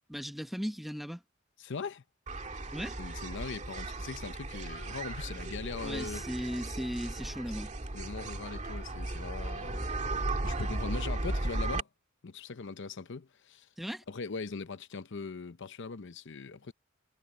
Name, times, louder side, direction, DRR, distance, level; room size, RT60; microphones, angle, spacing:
voice 1, 0.1-1.2 2.7-3.0 5.8-7.7 13.8-14.0, equal, ahead, 1.0 m, -37 dB
voice 2, 1.6-2.0 3.0-6.2 7.9-9.9 10.4-11.9 12.2-13.7 14.1-16.7, left 4 dB, 65° left, 0.7 m, -40 dB
sound 1, 2.3-11.8, right 2 dB, 35° right, 1.9 m, -36 dB
head